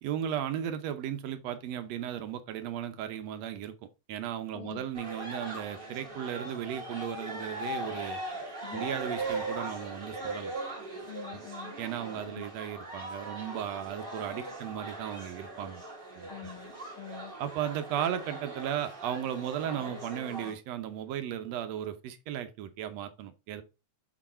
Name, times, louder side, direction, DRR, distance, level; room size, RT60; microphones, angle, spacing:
voice 1, 0.0-3.8 4.1-8.2 8.7-10.5 11.3-11.4 11.8-15.8 16.2-16.5 17.4-23.6, right 10 dB, 70° right, 1.9 m, -36 dB
voice 2, 4.5-4.9 8.6-8.8 11.1-11.7 12.2-12.4 16.3-17.3, left 11 dB, 90° left, 1.1 m, -45 dB
sound 1, 4.9-20.5, right 2 dB, 25° right, 1.5 m, -40 dB
6.4 x 4.8 x 4.3 m
omnidirectional pair, 3.4 m